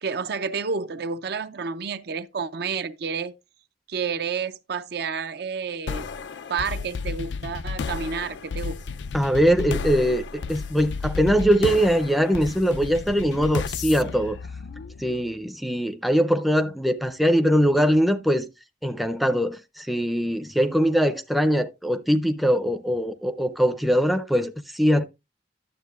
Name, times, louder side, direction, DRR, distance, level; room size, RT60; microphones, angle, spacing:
voice 1, 0.0-3.3 3.9-6.1 6.5-8.8, right 5 dB, 60° right, 0.5 m, -30 dB
sound 1, 5.9-15.3, left 5 dB, 75° left, 0.4 m, -33 dB
voice 2, 9.1-10.2 10.5-14.4 15.0-18.5 18.8-25.0, equal, ahead, 0.5 m, -22 dB
11.0 x 7.3 x 2.4 m
head